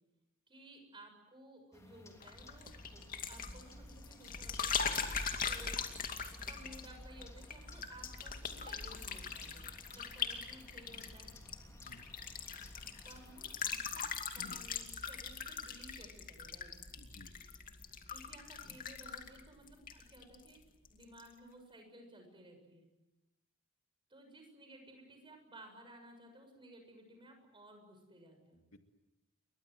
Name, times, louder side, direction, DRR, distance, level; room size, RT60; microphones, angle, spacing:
voice 1, 0.5-5.8 6.3-11.3 13.0-14.0 14.3-16.8 18.1-20.6 20.9-22.9 24.1-28.6, right 1 dB, 25° right, 5 dB, 6.9 m, -57 dB
sound 1, 1.7-13.7, left 1 dB, 15° left, 3.3 m, -59 dB
sound 2, 2.2-20.6 20.8-21.3, left 6 dB, 40° left, 2.4 m, -41 dB
voice 2, 11.7-12.1 14.4-14.6 17.0-17.3 28.5-28.8, left 2 dB, 85° left, 6 dB, 2.4 m, -55 dB
29.5 x 23.5 x 7.8 m, 0.97 s
head